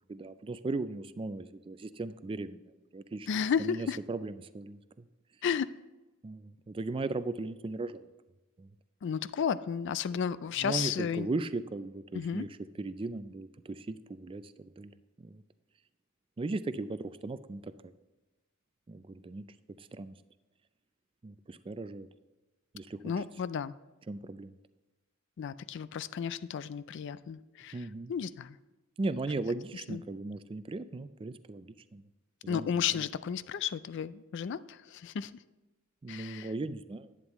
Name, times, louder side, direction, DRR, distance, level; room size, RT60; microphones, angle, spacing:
voice 1, 0.1-2.6 2.9-3.3 3.6-5.0 6.2-8.0 8.6-8.7 10.6-14.9 15.2-15.4 16.4-17.7 18.9-19.5 19.8-20.1 21.2-22.1 22.7-23.1 24.1-24.5 27.7-28.1 29.0-32.0 32.4-33.0 36.0-37.1, right 3 dB, 25° right, 13 dB, 0.4 m, -37 dB
voice 2, 3.3-4.0 5.4-5.8 9.0-11.3 12.1-12.5 23.0-23.7 25.4-27.8 28.1-28.6 29.9-30.0 32.5-35.3 36.1-36.5, left 7 dB, 60° left, 16 dB, 0.3 m, -33 dB
11.0 x 9.0 x 3.1 m, 1.1 s
head